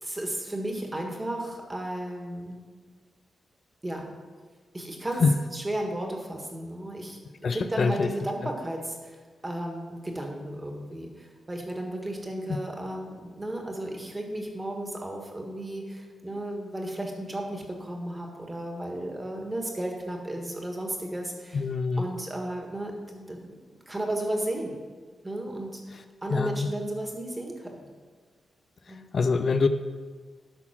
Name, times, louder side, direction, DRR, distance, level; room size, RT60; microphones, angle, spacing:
voice 1, 0.0-2.6 3.8-4.1 4.7-5.2 5.5-7.2 7.5-21.6 22.0-23.6 23.9-24.8 25.2-25.8 26.2-27.7 28.9-29.1, right 1 dB, 20° right, 1 dB, 1.8 m, -34 dB
voice 2, 7.4-8.1 21.5-22.1 26.3-26.7 29.1-29.7, left 4 dB, 55° left, 9 dB, 0.4 m, -24 dB
11.5 x 4.0 x 5.9 m, 1.5 s
cardioid pair, 80°, 0 cm